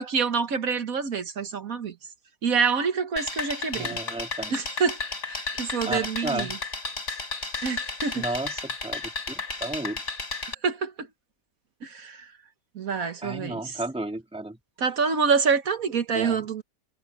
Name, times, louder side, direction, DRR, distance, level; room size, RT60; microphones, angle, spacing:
voice 1, 0.0-1.9 2.4-4.0 4.5-5.0 5.3-6.5 7.6-8.2 10.6-11.1 11.8-12.2 12.7-13.7 14.8-16.6, right 5 dB, 65° right, 1.7 m, -26 dB
sound 1, 3.2-10.5, left 4 dB, 50° left, 3.2 m, -33 dB
voice 2, 3.7-4.5 5.8-6.6 8.1-10.0 13.2-14.6 16.1-16.5, right 2 dB, 5° right, 1.8 m, -33 dB
omnidirectional pair, 1.6 m